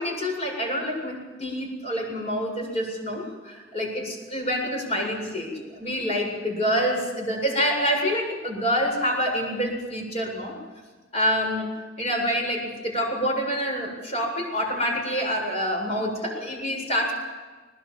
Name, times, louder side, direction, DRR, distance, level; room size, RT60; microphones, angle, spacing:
voice 1, 0.0-10.5 11.1-11.7 12.0-17.1, equal, 35° left, 1 dB, 7.7 m, -27 dB
21.5 x 19.5 x 7.4 m, 1.3 s
head